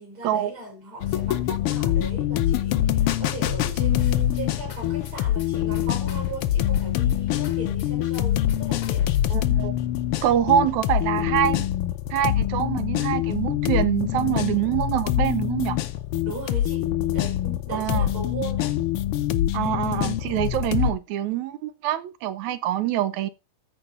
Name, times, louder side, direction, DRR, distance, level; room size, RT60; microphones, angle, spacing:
voice 1, 0.0-9.1 16.2-18.8, right 2 dB, 40° right, 7.1 m, -38 dB
sound 1, 1.0-20.9, left 12 dB, 90° left, 1.2 m, -25 dB
sound 2, 4.0-9.5, left 8 dB, 55° left, 1.2 m, -40 dB
voice 2, 9.3-9.8 10.2-11.7 12.1-15.8 17.7-18.1 19.5-23.3, right 11 dB, 75° right, 2.0 m, -25 dB
14.0 x 4.8 x 5.2 m
omnidirectional pair, 3.5 m